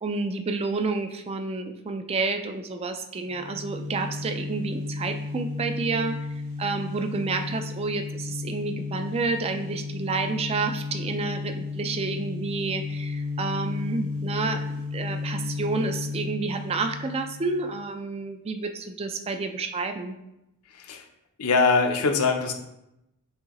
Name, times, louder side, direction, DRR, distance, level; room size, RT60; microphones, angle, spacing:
voice 1, 0.0-6.2 6.6-20.2, right 3 dB, 25° right, 7 dB, 0.3 m, -30 dB
sound 1, 3.3-17.8, left 4 dB, 60° right, 1.2 m, -33 dB
voice 2, 20.7-21.0 21.4-22.5, left 4 dB, 85° left, 4 dB, 0.6 m, -22 dB
6.4 x 2.7 x 3.0 m, 0.86 s
head